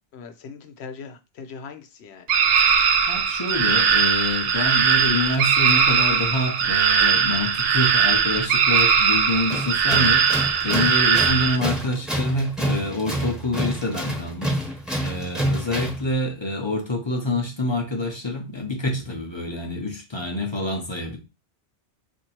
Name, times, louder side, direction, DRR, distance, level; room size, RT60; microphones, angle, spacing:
voice 1, 0.1-2.3, left 5 dB, 90° left, 0.9 m, -40 dB
sound 1, 2.3-11.6, right 7 dB, 70° right, 0.8 m, -20 dB
voice 2, 3.1-14.6 15.0-21.2, left 2 dB, 30° left, 0.7 m, -27 dB
Tools, 9.5-16.1, equal, ahead, 0.9 m, -28 dB
2.8 x 2.7 x 4.3 m
omnidirectional pair, 1.1 m